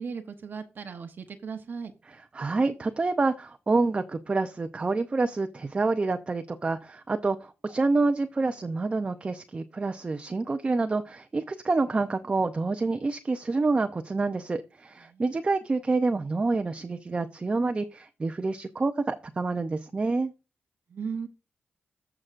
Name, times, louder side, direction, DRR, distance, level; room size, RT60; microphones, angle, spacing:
voice 1, 0.0-1.9 15.1-15.2 20.9-21.3, right 6 dB, 50° right, 0.9 m, -36 dB
voice 2, 2.1-20.3, right 3 dB, 25° right, 0.6 m, -27 dB
14.0 x 5.9 x 2.5 m
cardioid pair, 105°, 4 cm